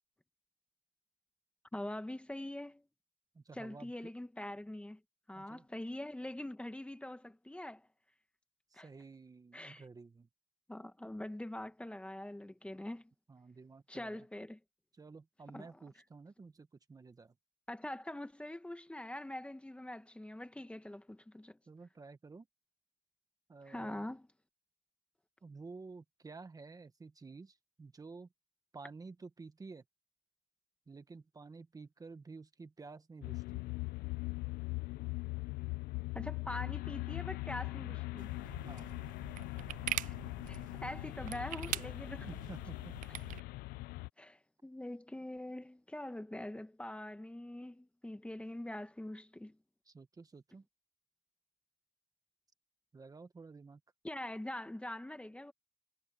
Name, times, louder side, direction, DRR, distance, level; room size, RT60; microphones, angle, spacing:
voice 1, 1.7-2.8 3.5-5.0 5.3-7.9 8.7-8.9 9.5-9.8 10.7-13.1 13.9-14.6 15.5-15.7 17.7-21.6 23.7-24.2 36.1-38.3 40.0-40.2 40.5-42.3 44.2-49.6 54.0-55.5, left 1 dB, 5° left, 1.4 m, -44 dB
voice 2, 3.3-4.1 5.3-5.7 8.7-10.3 13.3-14.2 14.9-17.4 21.7-22.5 23.5-24.1 25.4-28.3 28.7-29.8 30.9-33.6 38.5-38.9 42.2-42.9 49.8-50.7 52.9-53.8, right 4 dB, 25° right, 1.4 m, -52 dB
sound 1, 33.2-44.1, left 23 dB, 90° left, 0.5 m, -41 dB
sound 2, 38.2-43.4, right 13 dB, 60° right, 0.4 m, -43 dB
cardioid pair, 105°, 15 cm